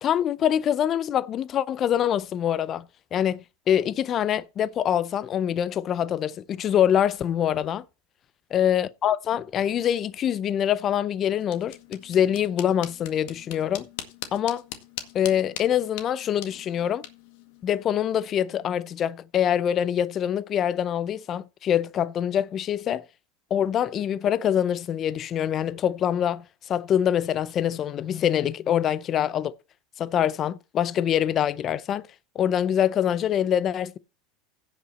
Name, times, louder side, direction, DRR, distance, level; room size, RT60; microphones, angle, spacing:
voice 1, 0.0-2.9 3.1-7.8 8.5-13.9 14.3-14.6 15.1-17.0 17.6-23.0 23.5-29.6 30.0-32.0 32.3-34.0, left 10 dB, 30° left, 0.6 m, -25 dB
sound 1, 11.4-18.3, left 12 dB, 65° left, 1.9 m, -42 dB
16.5 x 5.6 x 4.2 m
supercardioid pair, 150°, 0 cm